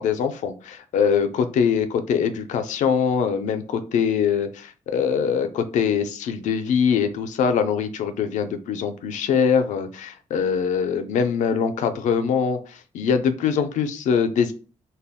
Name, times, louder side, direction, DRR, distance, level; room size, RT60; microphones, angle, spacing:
voice 1, 0.0-14.5, left 7 dB, 85° left, 8 dB, 0.4 m, -23 dB
2.2 x 2.1 x 3.4 m, 0.37 s
cardioid pair, 95°, 12 cm